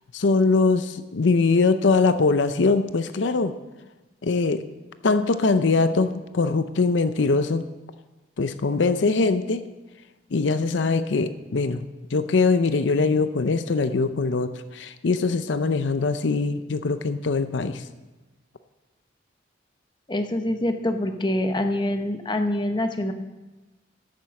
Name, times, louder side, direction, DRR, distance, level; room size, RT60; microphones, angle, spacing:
voice 1, 0.1-3.6 4.2-4.6 5.0-7.7 8.4-9.6 10.3-11.8 12.1-17.8, left 3 dB, 80° left, 11 dB, 0.6 m, -22 dB
voice 2, 20.1-23.1, left 1 dB, 25° left, 7 dB, 0.8 m, -25 dB
11.0 x 7.5 x 7.0 m, 1.1 s
head